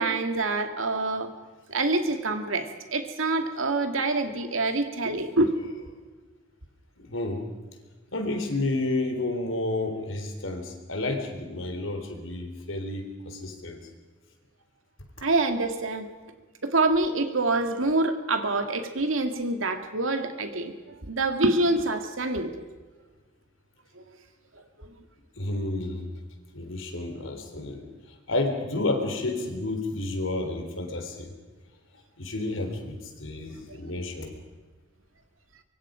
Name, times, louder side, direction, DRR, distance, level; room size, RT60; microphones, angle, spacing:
voice 1, 0.0-1.3 1.7-5.5 15.2-16.1 16.6-22.5 24.0-24.1 24.8-24.9, right 2 dB, 80° right, 7 dB, 2.2 m, -26 dB
voice 2, 7.0-7.4 8.1-13.8 25.4-26.1 26.5-31.3 32.2-34.3, left 2 dB, 75° left, 5 dB, 3.7 m, -31 dB
24.5 x 23.5 x 5.1 m, 1.3 s
head